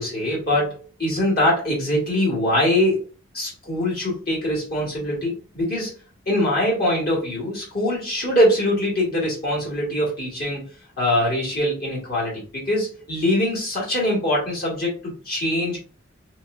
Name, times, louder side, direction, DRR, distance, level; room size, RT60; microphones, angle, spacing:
voice 1, 0.0-3.0 3.3-5.9 6.3-15.8, left 1 dB, 50° left, -5 dB, 2.1 m, -23 dB
4.5 x 3.8 x 2.4 m, 0.35 s
head